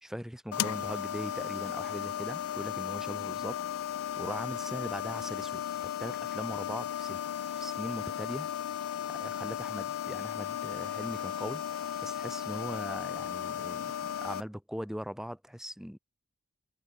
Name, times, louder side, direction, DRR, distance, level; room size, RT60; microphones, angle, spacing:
voice 1, 0.0-3.6 4.2-8.5 9.1-11.6 12.0-16.0, equal, ahead, 1.8 m, -40 dB
sound 1, 0.5-14.4, left 10 dB, 90° left, 0.3 m, -35 dB
head